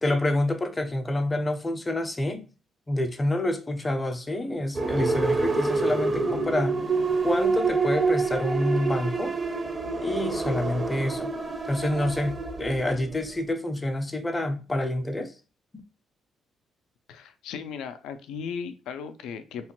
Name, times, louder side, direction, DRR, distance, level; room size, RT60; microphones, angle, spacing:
voice 1, 0.0-2.5 2.9-6.8 7.2-9.3 10.0-11.3 11.7-15.3, left 1 dB, 20° left, 0.5 m, -27 dB
sound 1, 4.7-13.4, right 4 dB, 30° right, 0.5 m, -27 dB
voice 2, 17.1-19.7, left 6 dB, 85° left, 0.3 m, -36 dB
2.9 x 2.1 x 2.9 m
cardioid pair, 90°, 0 cm